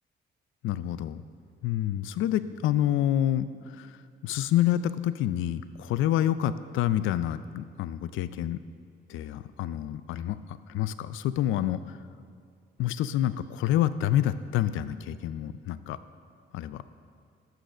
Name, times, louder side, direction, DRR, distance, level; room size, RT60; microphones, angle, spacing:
voice 1, 0.6-1.2 1.6-8.6 9.1-12.0 12.8-16.0 16.5-16.8, left 12 dB, 85° left, 14 dB, 0.4 m, -28 dB
11.0 x 6.5 x 6.7 m, 2.3 s
cardioid pair, 90°, 20 cm